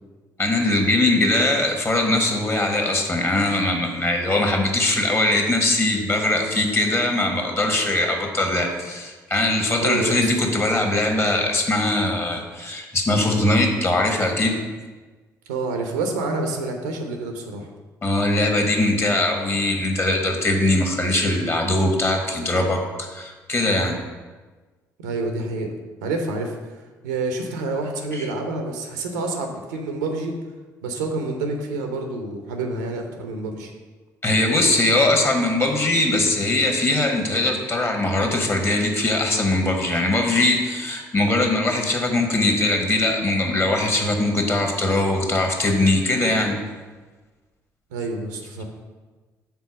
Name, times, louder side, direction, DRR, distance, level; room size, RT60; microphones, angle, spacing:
voice 1, 0.4-14.6 18.0-24.0 28.1-28.3 34.2-46.6, left 2 dB, 25° left, 3 dB, 1.3 m, -21 dB
voice 2, 9.8-10.3 15.5-17.7 25.0-25.8 26.0-26.7 27.0-30.4 30.8-33.7 47.9-48.6, right 3 dB, 70° right, 4 dB, 0.8 m, -28 dB
6.0 x 3.9 x 6.0 m, 1.3 s
figure-of-eight pair, 50°, 10 cm